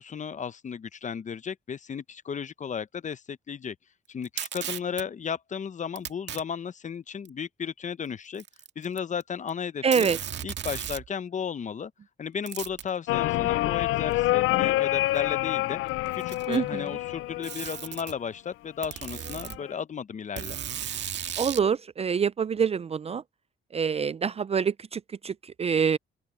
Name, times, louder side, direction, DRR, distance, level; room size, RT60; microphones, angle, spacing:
voice 1, 0.0-3.8 4.1-8.4 8.8-10.1 10.4-11.9 12.2-15.8 16.1-20.6, left 7 dB, 40° left, 0.8 m, -34 dB
Packing tape duct tape, 4.2-5.0 6.0-6.4 7.3-7.4 8.3-9.2 9.5-9.6 9.9-11.1 12.5-12.9 14.1-14.2 15.2-15.3 16.1-16.7 17.4-18.1 18.8-19.6 20.4-21.7, right 9 dB, 60° right, 1.9 m, -35 dB
voice 2, 9.8-10.2 16.5-17.0 21.4-23.2 23.7-26.0, right 6 dB, 30° right, 0.4 m, -26 dB
sound 1, 13.1-18.1 19.3-19.8, left 16 dB, 90° left, 0.5 m, -27 dB
open air
cardioid pair, 90°, 20 cm